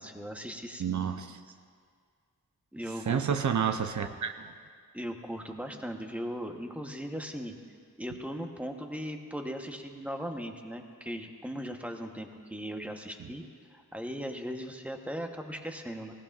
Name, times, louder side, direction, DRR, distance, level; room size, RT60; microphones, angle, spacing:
voice 1, 0.0-1.0 2.7-3.2 4.9-7.5 8.0-13.4 13.7-16.1, equal, 5° right, 3 dB, 1.0 m, -38 dB
voice 2, 0.8-1.4 3.1-4.5 13.2-13.3, right 7 dB, 60° right, 7 dB, 0.7 m, -30 dB
20.0 x 17.0 x 2.5 m, 2.1 s
wide cardioid pair, 95°, 32 cm